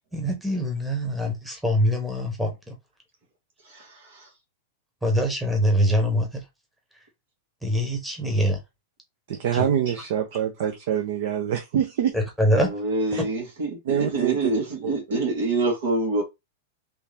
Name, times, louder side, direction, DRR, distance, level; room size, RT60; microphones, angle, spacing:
voice 1, 0.1-2.7 5.0-6.4 7.6-8.6 9.5-9.7 12.1-12.7, equal, 5° right, 1.0 m, -24 dB
voice 2, 3.6-4.3 12.5-16.2, right 2 dB, 80° right, 2.0 m, -26 dB
voice 3, 9.3-12.2 13.1-13.2 13.9-14.4 14.8-15.2, right 9 dB, 65° right, 0.7 m, -25 dB
3.4 x 2.8 x 3.4 m
supercardioid pair, 145°, 0 cm